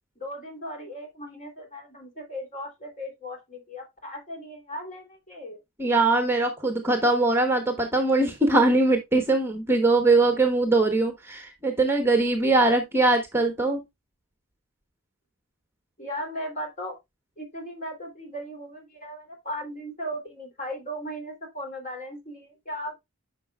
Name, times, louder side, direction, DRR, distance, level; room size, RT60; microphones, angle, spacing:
voice 1, 0.2-5.6 16.0-17.0 17.4-23.0, equal, 35° left, 3.0 m, -37 dB
voice 2, 5.8-13.8, right 2 dB, 10° right, 1.1 m, -21 dB
10.0 x 5.8 x 2.3 m
head